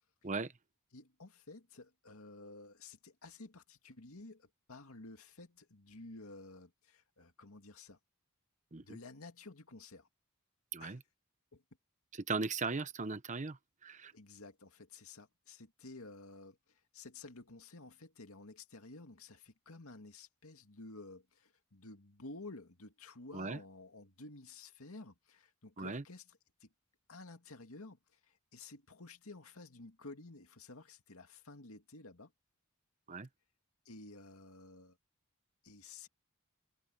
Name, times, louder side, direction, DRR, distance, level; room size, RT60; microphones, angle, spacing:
voice 1, 0.9-8.0 8.8-10.1 10.8-11.0 11.5-11.6 14.1-26.7 27.1-32.3 33.9-35.0 35.6-36.1, left 3 dB, 80° left, 2.3 m, -52 dB
voice 2, 12.3-13.6 13.8-14.1 23.3-23.6 25.8-26.0 33.1-33.3, right 4 dB, 35° right, 0.9 m, -37 dB
head